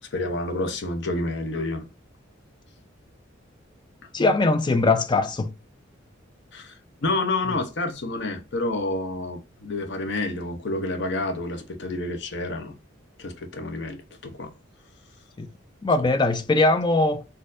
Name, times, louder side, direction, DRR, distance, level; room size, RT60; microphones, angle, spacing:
voice 1, 0.1-1.9 6.5-12.7 13.2-14.5 16.0-16.1, left 2 dB, 60° left, 0.7 m, -29 dB
voice 2, 4.1-5.5 15.4-15.5 15.8-17.2, left 2 dB, 20° left, 0.4 m, -21 dB
4.3 x 2.6 x 2.5 m
head